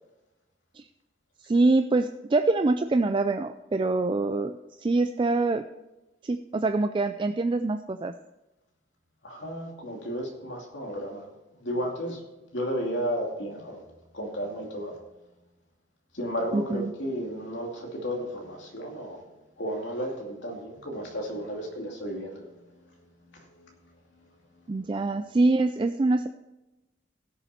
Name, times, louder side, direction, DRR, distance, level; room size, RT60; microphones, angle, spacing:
voice 1, 1.4-5.6 6.2-8.1 16.5-16.9 24.7-26.3, right 2 dB, 25° right, 9 dB, 0.4 m, -25 dB
voice 2, 9.2-11.3 11.6-12.2 12.5-13.8 14.1-14.9 16.1-19.2 19.6-22.9 23.2-23.8 24.2-24.3 24.6-25.1, equal, 85° left, 1 dB, 2.6 m, -34 dB
17.0 x 7.0 x 4.3 m, 1.0 s
head